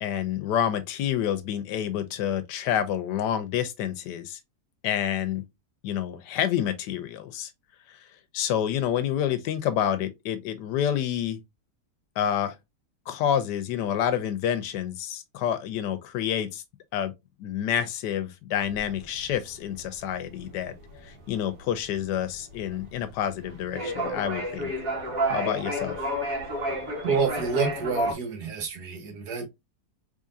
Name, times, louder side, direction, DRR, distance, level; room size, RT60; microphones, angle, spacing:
voice 1, 0.0-4.4 4.8-5.4 5.8-7.5 7.9-11.4 12.2-12.6 13.1-16.6 16.9-17.1 17.4-20.7 21.0-24.7 25.3-26.1, left 10 dB, 85° left, 1.2 m, -28 dB
sound 1, 18.6-28.1, right 1 dB, 55° right, 1.6 m, -31 dB
voice 2, 27.0-29.4, right 4 dB, 75° right, 1.7 m, -28 dB
3.7 x 3.4 x 2.5 m
omnidirectional pair, 1.8 m